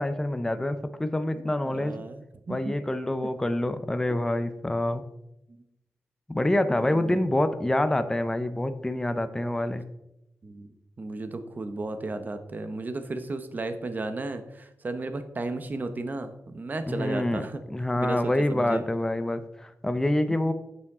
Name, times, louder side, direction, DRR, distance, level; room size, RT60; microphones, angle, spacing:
voice 1, 0.0-2.0 2.5-5.0 6.3-9.8 16.8-20.5, left 1 dB, 10° left, 10 dB, 0.5 m, -26 dB
voice 2, 1.5-2.7 5.5-5.6 6.7-7.2 10.4-17.6 18.0-18.2 18.5-18.8, right 2 dB, 35° right, 9 dB, 0.8 m, -34 dB
10.0 x 7.2 x 3.6 m, 0.87 s
wide cardioid pair, 160°, 5 cm